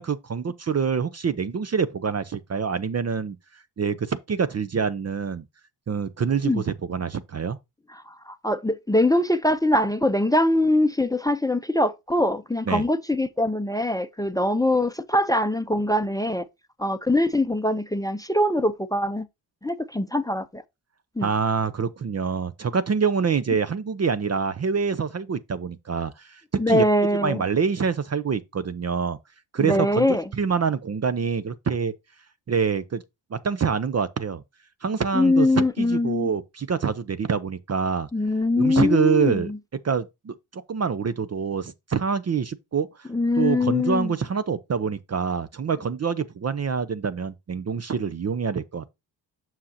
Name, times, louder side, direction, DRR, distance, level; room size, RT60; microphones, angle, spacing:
voice 1, 0.0-3.4 3.8-5.4 5.9-7.6 12.7-12.8 21.2-26.8 27.2-29.2 29.5-30.1 30.3-31.9 32.5-33.0 33.3-34.4 34.8-38.1 38.6-39.5 39.8-43.1 43.4-48.9, right 6 dB, 35° right, 0.6 m, -26 dB
voice 2, 8.3-16.4 16.8-19.3 19.6-20.6 21.2-21.3 26.6-27.4 29.6-30.2 35.1-36.3 38.1-39.6 43.1-44.1, left 1 dB, 10° left, 0.6 m, -22 dB
7.4 x 5.8 x 2.8 m
supercardioid pair, 55°, 46 cm